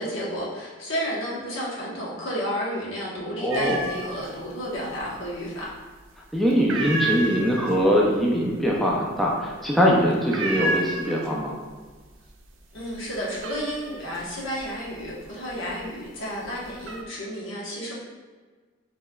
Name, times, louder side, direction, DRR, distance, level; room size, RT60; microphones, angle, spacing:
voice 1, 0.0-5.7 12.7-17.9, equal, 75° left, -5 dB, 1.1 m, -31 dB
voice 2, 3.4-3.8 6.3-11.5, equal, ahead, -4 dB, 0.4 m, -22 dB
sound 1, 3.5-4.3 4.6-5.4 5.8-6.1 6.5-11.6 11.9-12.4 12.8-15.9 16.4-17.0, right 1 dB, 75° right, 0.5 m, -31 dB
4.7 x 3.3 x 2.3 m, 1.4 s
head